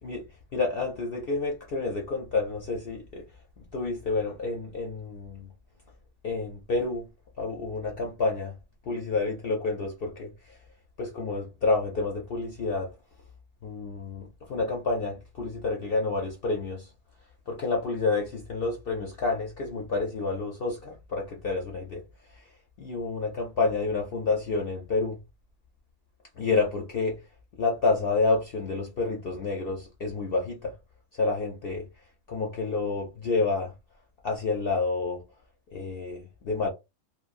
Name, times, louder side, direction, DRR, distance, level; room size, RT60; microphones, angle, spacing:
voice 1, 0.5-3.2 3.7-5.5 6.2-7.1 7.4-8.6 8.9-10.6 11.0-12.9 13.6-16.9 17.5-22.0 22.3-22.5 22.8-25.2 26.4-27.2 27.6-30.7 31.1-31.9 32.3-33.7 34.2-35.2 35.7-36.7, left 3 dB, 60° left, 0.6 m, -29 dB
2.9 x 2.1 x 2.5 m
omnidirectional pair, 1.5 m